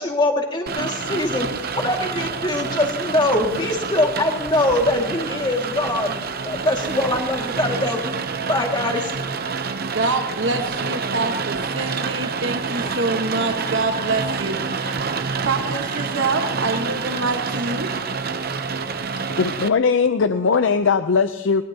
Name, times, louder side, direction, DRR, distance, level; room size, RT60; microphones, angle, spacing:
voice 1, 0.0-1.5 1.7-6.2 6.4-8.1 8.5-9.1, left 1 dB, 25° left, 2 dB, 2.0 m, -22 dB
Rain, 0.7-19.7, right 5 dB, 50° right, 0.7 m, -27 dB
voice 2, 9.9-15.0 15.4-17.9, right 3 dB, 70° right, 4 dB, 1.2 m, -25 dB
voice 3, 19.3-21.6, left 5 dB, 80° left, 10 dB, 0.5 m, -19 dB
20.5 x 19.5 x 2.8 m, 1.0 s
head